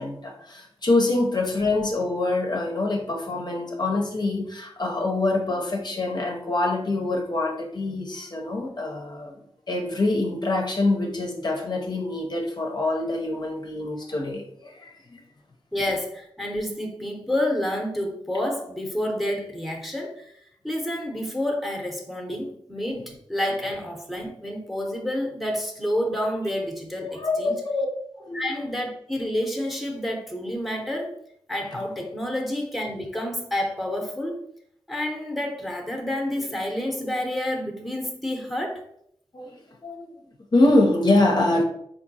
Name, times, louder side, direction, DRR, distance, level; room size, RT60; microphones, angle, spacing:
voice 1, 0.0-9.4 9.7-15.2 27.2-27.9 28.2-28.5 39.3-39.6 39.8-40.1 40.5-41.6, left 2 dB, 45° left, 0 dB, 0.6 m, -25 dB
voice 2, 15.7-27.5 28.3-31.1 31.5-34.4 34.9-38.8, left 1 dB, ahead, 2 dB, 0.8 m, -29 dB
3.6 x 2.6 x 2.7 m, 0.70 s
cardioid pair, 45°, 10 cm